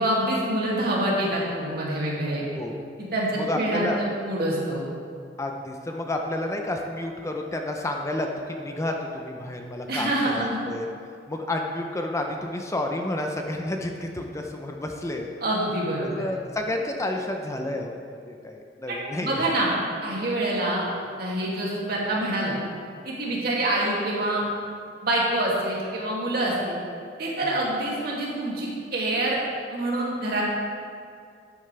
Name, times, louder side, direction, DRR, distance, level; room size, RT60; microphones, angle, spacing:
voice 1, 0.0-2.4 3.0-4.8 9.9-10.6 15.4-16.1 18.9-19.7 20.0-20.8 21.2-22.5 23.0-24.4 25.0-26.8 27.2-29.4 29.7-30.4, right 1 dB, 60° right, -5 dB, 2.4 m, -26 dB
voice 2, 3.4-4.0 5.4-10.1 10.3-10.9 11.3-15.3 16.0-19.5 27.4-27.6, left 1 dB, 15° left, 2 dB, 0.6 m, -30 dB
12.5 x 8.7 x 3.3 m, 2.3 s
head